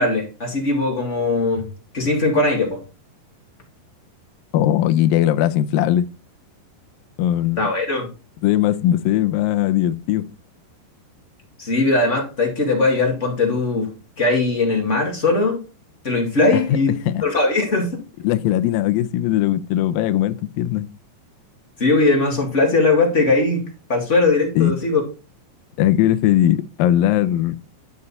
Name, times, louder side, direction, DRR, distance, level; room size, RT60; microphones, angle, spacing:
voice 1, 0.0-1.7 1.9-2.8 7.6-8.1 11.6-13.9 14.2-15.6 16.0-16.9 17.2-18.0 21.8-23.6 23.9-25.0, left 3 dB, 30° left, 1.3 m, -19 dB
voice 2, 4.5-6.1 7.2-7.6 8.4-10.3 16.5-16.6 17.1-17.2 18.2-20.9 24.6-24.7 25.8-27.6, left 12 dB, 85° left, 2.0 m, -19 dB
12.0 x 5.4 x 4.2 m
omnidirectional pair, 4.9 m